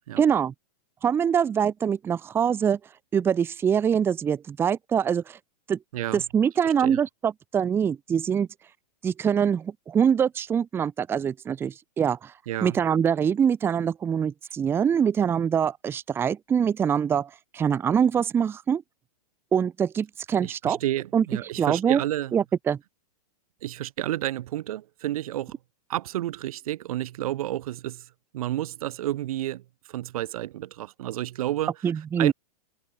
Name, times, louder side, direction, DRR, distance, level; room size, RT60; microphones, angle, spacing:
voice 1, 0.2-0.5 1.0-2.8 3.1-5.4 5.7-5.8 6.1-8.5 9.0-12.3 12.6-18.8 19.5-20.8 21.1-21.2 21.6-22.0 22.3-22.8 31.8-32.3, right 7 dB, 10° right, 0.8 m, -24 dB
voice 2, 12.5-12.8 20.4-22.3 23.6-25.5 25.9-28.0 28.3-29.6 29.9-31.7 32.2-32.3, right 14 dB, 65° right, 1.0 m, -30 dB
supercardioid pair, 160°, 20 cm